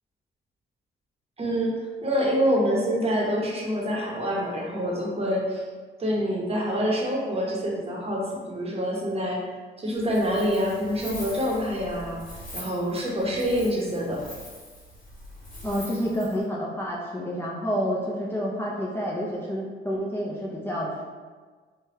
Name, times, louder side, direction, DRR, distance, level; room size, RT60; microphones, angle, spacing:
voice 1, 1.4-1.7 2.0-5.6 6.0-9.4 9.8-12.2 12.5-14.2, equal, 30° right, -3 dB, 0.8 m, -26 dB
Wind, 9.9-16.4, equal, 40° left, 1.4 m, -43 dB
voice 2, 15.6-21.0, equal, 10° left, -6 dB, 0.4 m, -29 dB
3.2 x 2.2 x 2.9 m, 1.5 s
cardioid pair, 90°, 20 cm